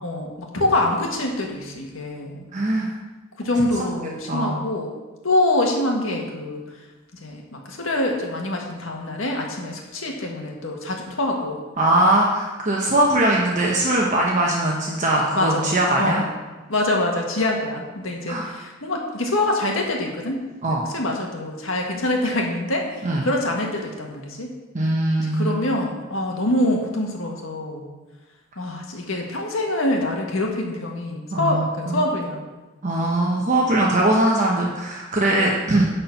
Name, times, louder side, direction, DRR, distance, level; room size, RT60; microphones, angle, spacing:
voice 1, 0.0-2.5 3.4-4.9 5.2-6.6 7.2-11.6 15.3-16.3 16.7-20.4 20.7-24.5 25.2-27.9 28.6-32.4, left 1 dB, 75° left, 0 dB, 1.8 m, -25 dB
voice 2, 2.5-2.9 4.3-4.6 11.8-16.2 18.3-18.5 20.6-20.9 23.0-23.2 24.7-25.6 31.3-32.1 32.8-35.9, right 1 dB, 35° right, -2 dB, 1.0 m, -21 dB
11.0 x 4.4 x 7.0 m, 1.2 s
head